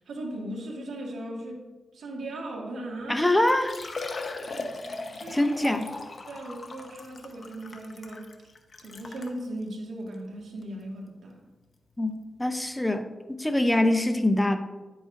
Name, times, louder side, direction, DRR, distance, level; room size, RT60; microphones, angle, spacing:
voice 1, 0.0-1.6 1.9-3.3 5.1-5.6 6.3-8.4 8.8-11.4, right 1 dB, 80° right, -1 dB, 1.8 m, -37 dB
Liquid, 3.0-3.1 3.5-9.4 10.1-10.2 10.6-10.7 12.4-12.5 12.6-12.7, left 3 dB, 50° left, 1.0 m, -38 dB
voice 2, 3.1-3.8 5.3-5.9 12.0-12.1 12.4-14.6, left 1 dB, 15° left, 7 dB, 0.7 m, -24 dB
10.5 x 7.8 x 2.6 m, 1.2 s
cardioid pair, 60°, 0 cm